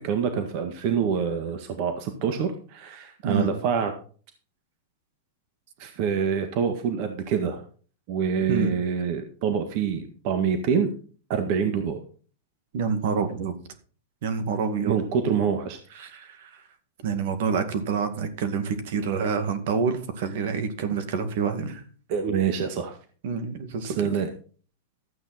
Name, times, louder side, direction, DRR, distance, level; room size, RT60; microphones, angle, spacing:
voice 1, 0.0-3.9 5.8-7.6 8.1-10.9 11.3-12.0 14.8-15.8 21.7-21.8 22.1-23.0 23.8-24.3, right 7 dB, 45° right, 7 dB, 1.6 m, -26 dB
voice 2, 12.7-13.6 14.2-14.9 16.0-16.6 17.0-21.8 23.2-24.1, right 5 dB, 65° right, 9 dB, 2.1 m, -27 dB
13.0 x 8.6 x 4.3 m, 0.41 s
supercardioid pair, 145°, 0 cm